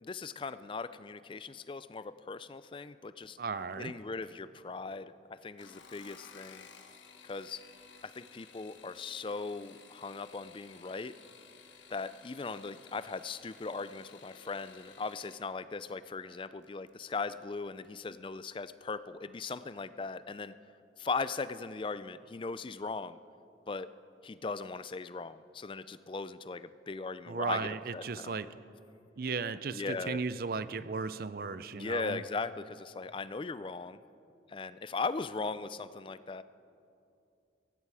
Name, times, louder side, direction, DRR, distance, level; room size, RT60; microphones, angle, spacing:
voice 1, 0.0-3.4 3.8-6.7 7.2-7.6 8.0-11.1 11.9-20.5 21.0-23.2 23.7-23.9 24.2-28.4 29.7-30.2 31.7-34.0 34.5-36.4, left 4 dB, 25° left, 14 dB, 0.4 m, -39 dB
voice 2, 3.4-3.9 27.3-28.5 29.2-32.2, right 4 dB, 50° right, 14 dB, 0.5 m, -35 dB
sound 1, 5.5-15.4 16.6-17.1 17.5-18.0 18.2-18.3, left 6 dB, 75° left, 1.3 m, -55 dB
16.5 x 16.0 x 4.8 m, 2.6 s
head